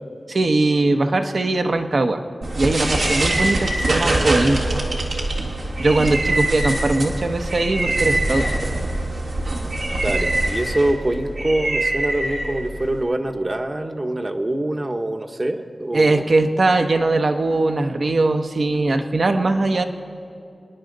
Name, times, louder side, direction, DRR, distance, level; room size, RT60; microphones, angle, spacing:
voice 1, 0.3-2.2 2.6-4.8 5.8-8.4 15.9-19.8, right 2 dB, 65° right, 6 dB, 0.9 m, -20 dB
sound 1, 2.4-13.0, right 2 dB, 85° right, 1.9 m, -23 dB
voice 2, 10.0-16.2, right 1 dB, 40° right, 4 dB, 1.0 m, -24 dB
25.5 x 9.8 x 3.9 m, 2.5 s
cardioid pair, 45°, 0 cm